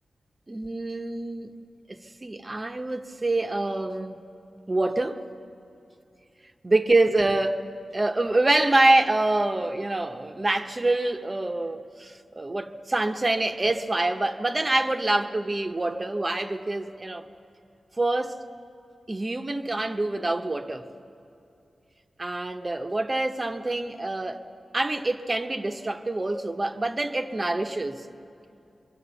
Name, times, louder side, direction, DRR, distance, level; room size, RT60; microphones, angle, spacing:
voice 1, 0.5-1.5 1.9-4.2 4.7-5.2 6.6-17.2 18.0-18.4 19.1-20.9 22.2-24.4 24.7-28.1, right 2 dB, 25° right, 0.9 m, -26 dB
26.0 x 23.5 x 7.0 m
wide cardioid pair, 125°, 0 cm